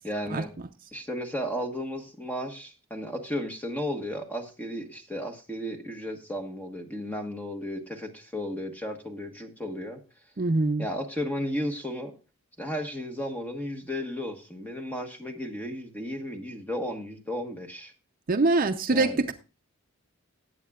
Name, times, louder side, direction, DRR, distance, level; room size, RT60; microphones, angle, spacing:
voice 1, 0.0-0.5 0.9-10.0 10.8-12.1 12.6-17.9 18.9-19.2, equal, 5° left, 1.2 m, -34 dB
voice 2, 10.4-10.9 18.3-19.3, right 3 dB, 40° right, 0.5 m, -24 dB
18.5 x 8.3 x 2.4 m
head